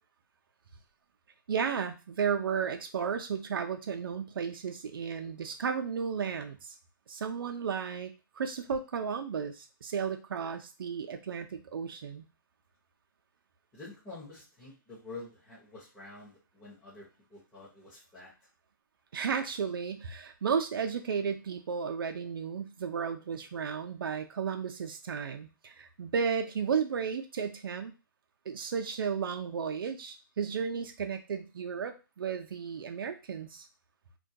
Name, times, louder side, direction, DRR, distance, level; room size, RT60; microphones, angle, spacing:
voice 1, 1.5-6.7 7.1-8.1 8.4-12.3 19.1-27.9 28.5-33.7, right 6 dB, 85° right, 5 dB, 0.4 m, -33 dB
voice 2, 13.7-18.3, left 3 dB, 10° left, -11 dB, 0.7 m, -48 dB
2.2 x 2.2 x 2.6 m, 0.30 s
hypercardioid pair, 160°, 12 cm